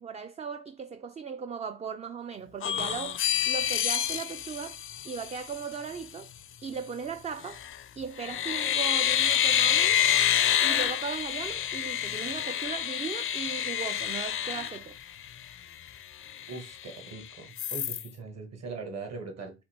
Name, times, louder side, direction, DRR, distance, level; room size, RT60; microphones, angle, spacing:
voice 1, 0.0-3.2 3.5-4.8 5.0-6.3 6.6-7.6 8.0-10.0 10.6-15.0, right 6 dB, 25° right, 0.3 m, -37 dB
sound 1, 2.6-5.6 7.4-7.8 8.2-15.4 15.9-16.0 16.3-17.1 17.6-18.1, left 10 dB, 45° left, 0.4 m, -28 dB
voice 2, 16.5-19.5, right 4 dB, 55° right, 1.7 m, -40 dB
4.2 x 2.6 x 4.4 m
cardioid pair, 90°, 30 cm